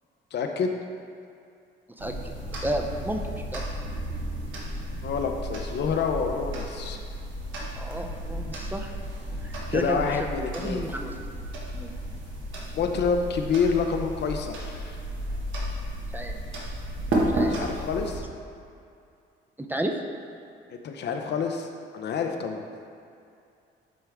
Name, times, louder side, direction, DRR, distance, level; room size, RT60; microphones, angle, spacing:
voice 1, 0.3-0.7 5.0-7.0 9.7-10.8 12.7-15.0 17.5-18.2 20.7-21.7 21.9-22.6, left 5 dB, 60° left, 4 dB, 0.6 m, -28 dB
voice 2, 2.0-2.3 2.6-3.6 7.7-8.9 9.4-10.2 10.5-11.1 11.7-11.9 16.1-16.4 17.3-17.6 19.6-20.0, right 1 dB, 10° right, 3 dB, 0.5 m, -32 dB
sound 1, 2.0-18.2, right 1 dB, 75° right, 1.2 m, -33 dB
9.2 x 3.4 x 3.4 m, 2.5 s
cardioid pair, 90°, 20 cm